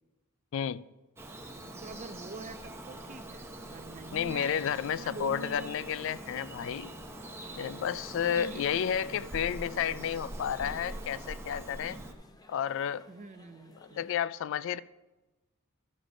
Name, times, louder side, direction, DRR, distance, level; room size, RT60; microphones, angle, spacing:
voice 1, 0.5-0.8 4.1-7.0 7.6-12.0 12.5-13.0 13.8-14.8, left 8 dB, 65° left, 0.3 m, -32 dB
Bird vocalization bird call bird song, 1.2-12.1, right 1 dB, 15° right, 0.9 m, -43 dB
voice 2, 1.8-4.5 4.8-5.8 8.2-8.8 13.1-14.0, right 3 dB, 35° right, 0.5 m, -45 dB
sound 1, 5.2-14.2, left 2 dB, 20° left, 0.6 m, -60 dB
12.5 x 6.6 x 5.0 m
head